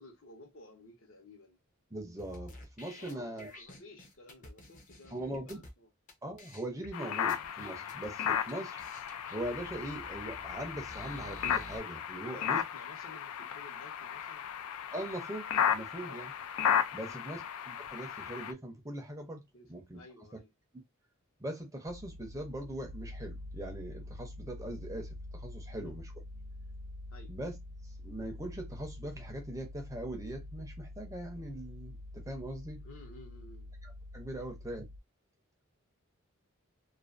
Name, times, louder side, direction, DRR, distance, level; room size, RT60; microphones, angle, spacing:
voice 1, 0.0-1.6 3.0-5.9 12.2-14.5 16.0-16.2 17.0-17.4 19.5-19.7 19.9-20.5 25.8-26.0 27.1-27.3 32.8-33.7 34.4-34.6, left 2 dB, 65° left, 0.8 m, -54 dB
voice 2, 1.9-3.5 5.1-5.6 6.2-8.9 9.3-12.6 14.9-16.3 16.9-19.4 19.7-20.0 21.4-26.1 27.3-27.6 27.8-32.8 33.8-34.8, right 1 dB, 15° right, 0.5 m, -41 dB
sound 1, 2.2-5.7 6.1-6.2 6.4-6.9 7.3-8.1 8.5-8.6 8.8-11.8, left 1 dB, 35° left, 0.6 m, -51 dB
sound 2, 6.9-18.5, left 8 dB, 85° left, 0.3 m, -35 dB
sound 3, 21.9-35.0, left 1 dB, 85° right, 0.4 m, -46 dB
2.5 x 2.3 x 2.4 m
head